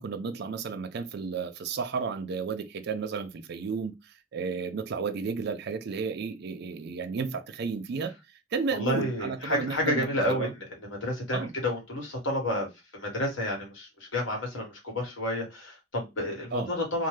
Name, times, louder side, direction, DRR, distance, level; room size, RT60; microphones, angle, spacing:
voice 1, 0.0-8.1 8.5-10.5 11.3-11.5 16.5-16.7, right 5 dB, 55° right, 0.4 m, -33 dB
voice 2, 8.7-10.5 11.0-12.7 12.9-17.1, left 1 dB, 85° left, 1.3 m, -30 dB
2.7 x 2.1 x 3.2 m
head